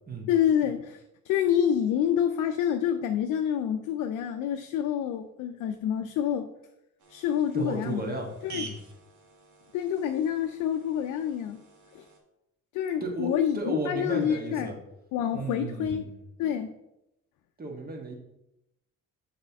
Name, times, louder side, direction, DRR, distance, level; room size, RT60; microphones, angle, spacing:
voice 1, 0.3-6.5 7.1-8.0 8.4-8.7 9.7-11.6 11.9-12.0 12.7-14.7 15.1-16.1 16.4-16.7, left 9 dB, 85° left, 6 dB, 0.5 m, -27 dB
sound 1, 7.0-12.2, right 5 dB, 70° right, 1.2 m, -48 dB
voice 2, 7.5-8.8 13.0-14.8 15.3-16.2 17.6-18.2, right 2 dB, 30° right, 2 dB, 1.4 m, -34 dB
6.7 x 4.3 x 3.5 m, 0.89 s
cardioid pair, 90°, 30 cm